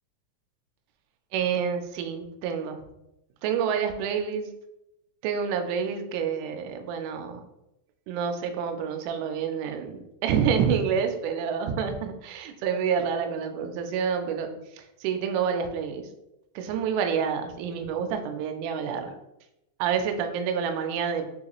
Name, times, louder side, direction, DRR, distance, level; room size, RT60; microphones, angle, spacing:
voice 1, 1.3-2.8 3.4-4.5 5.2-7.4 8.1-16.1 16.6-19.1 19.8-21.3, right 7 dB, 90° right, 5 dB, 2.8 m, -28 dB
6.6 x 2.4 x 2.9 m, 0.89 s
omnidirectional pair, 5.0 m